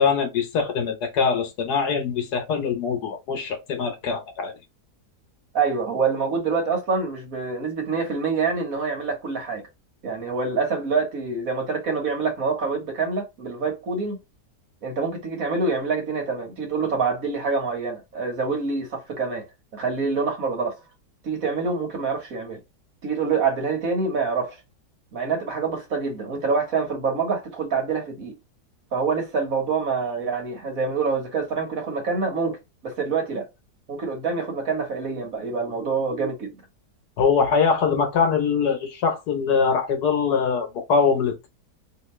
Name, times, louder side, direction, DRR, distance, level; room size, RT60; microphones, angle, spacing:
voice 1, 0.0-4.5 37.2-41.5, left 5 dB, 70° left, 1.4 m, -23 dB
voice 2, 5.5-9.6 10.0-14.2 14.8-19.5 19.7-20.7 21.2-22.6 23.0-24.6 25.1-28.4 28.9-33.5 33.9-36.6, right 4 dB, 55° right, 1.5 m, -26 dB
3.1 x 2.8 x 3.1 m
omnidirectional pair, 1.8 m